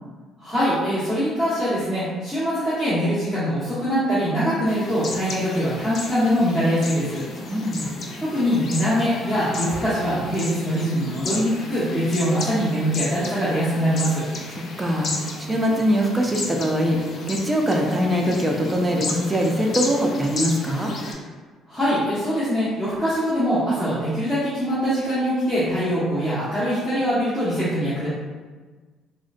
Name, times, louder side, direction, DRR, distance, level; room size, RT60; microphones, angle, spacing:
voice 1, 0.4-7.2 8.2-14.2 21.7-28.1, equal, 10° left, -13 dB, 1.0 m, -23 dB
sound 1, 4.6-21.1, left 3 dB, 50° left, 0.5 m, -34 dB
voice 2, 7.4-7.9 14.5-15.1 15.4-17.0 17.3-20.9, equal, 15° right, 0 dB, 0.5 m, -22 dB
3.6 x 2.1 x 2.5 m, 1.4 s
cardioid pair, 95°, 0 cm